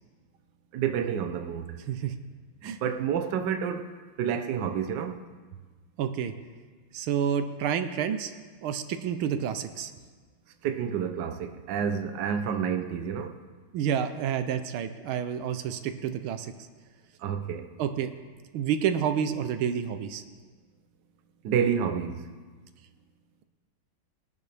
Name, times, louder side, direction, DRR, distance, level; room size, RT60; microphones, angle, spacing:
voice 1, 0.7-1.8 2.6-3.9 4.2-5.2 10.6-13.4 17.2-17.7 21.4-22.2, right 7 dB, 65° right, 1.3 m, -29 dB
voice 2, 6.0-6.3 6.9-8.3 8.6-9.9 13.7-16.5 17.8-18.1 18.5-20.2, right 8 dB, 85° right, 1.6 m, -29 dB
20.5 x 11.0 x 3.4 m
omnidirectional pair, 2.3 m